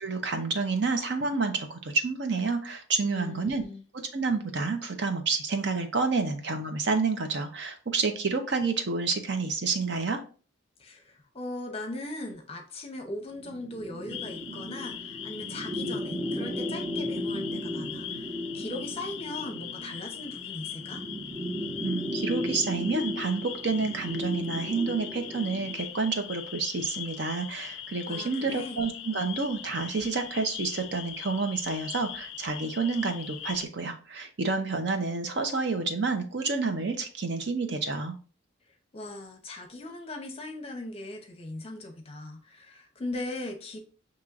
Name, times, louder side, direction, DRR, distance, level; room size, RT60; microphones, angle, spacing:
voice 1, 0.0-3.6 3.9-10.2 21.8-38.1, right 4 dB, 60° right, 6 dB, 0.6 m, -29 dB
voice 2, 3.0-3.8 10.8-21.0 28.1-28.8 38.9-43.8, left 2 dB, 30° left, 3 dB, 0.7 m, -39 dB
sound 1, 13.4-25.8, equal, 15° right, 0.5 m, -36 dB
sound 2, 14.1-33.6, left 10 dB, 70° left, 0.4 m, -40 dB
6.1 x 3.0 x 2.4 m, 0.38 s
head